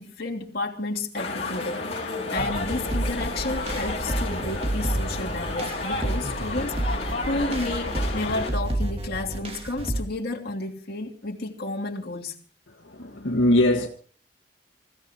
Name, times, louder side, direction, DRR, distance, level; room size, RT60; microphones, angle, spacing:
voice 1, 0.0-7.0 7.3-12.4, left 2 dB, 50° left, 3.1 m, -32 dB
sound 1, 1.1-8.5, left 3 dB, 35° left, 5.7 m, -31 dB
sound 2, 2.4-10.0, right 1 dB, 30° right, 2.3 m, -30 dB
voice 2, 12.7-13.9, left 1 dB, 80° left, 2.0 m, -22 dB
28.0 x 16.0 x 3.0 m
head